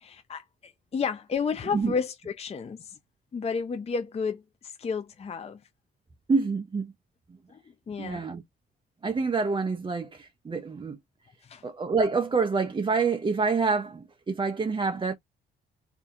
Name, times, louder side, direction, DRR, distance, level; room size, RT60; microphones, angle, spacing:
voice 1, 0.0-3.0 3.3-5.6 7.5-7.6 7.9-8.2 11.4-11.6, left 5 dB, 30° left, 0.5 m, -32 dB
voice 2, 6.3-6.9 8.0-8.4 9.0-11.0 11.6-15.1, right 4 dB, 25° right, 0.6 m, -27 dB
3.5 x 2.6 x 3.6 m
cardioid pair, 90°, 20 cm